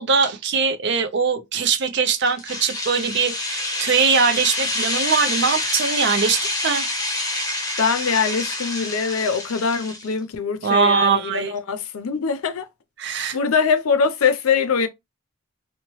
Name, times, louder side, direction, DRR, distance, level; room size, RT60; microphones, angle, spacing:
voice 1, 0.0-6.9 10.6-11.5 13.0-13.4, right 5 dB, 55° right, 0.5 m, -21 dB
sound 1, 2.2-10.1, left 2 dB, 15° left, 0.8 m, -27 dB
voice 2, 7.8-12.7 13.3-14.9, left 5 dB, 90° left, 0.5 m, -22 dB
2.8 x 2.1 x 2.9 m
head